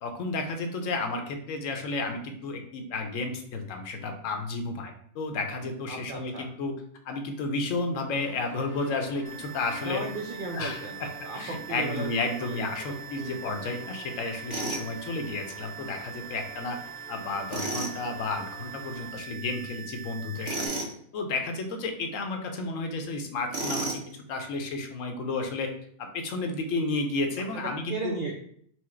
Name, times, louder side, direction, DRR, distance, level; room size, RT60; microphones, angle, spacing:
voice 1, 0.0-6.7 7.0-10.0 10.5-16.8 17.1-20.7 21.1-24.0 24.3-25.7 26.0-28.2, left 3 dB, 75° left, 5 dB, 1.0 m, -32 dB
voice 2, 5.9-6.5 9.8-12.1 12.4-13.7 27.9-28.3, right 3 dB, 65° right, 0 dB, 0.5 m, -36 dB
sound 1, 8.1-19.1, right 3 dB, 85° right, 1.2 m, -48 dB
sound 2, 9.2-20.7, right 8 dB, 40° left, 0.4 m, -43 dB
Tools, 14.5-14.9 17.5-18.0 20.4-20.9 23.5-24.1, right 2 dB, 25° right, 0.9 m, -31 dB
4.5 x 2.1 x 4.2 m, 0.63 s
omnidirectional pair, 1.4 m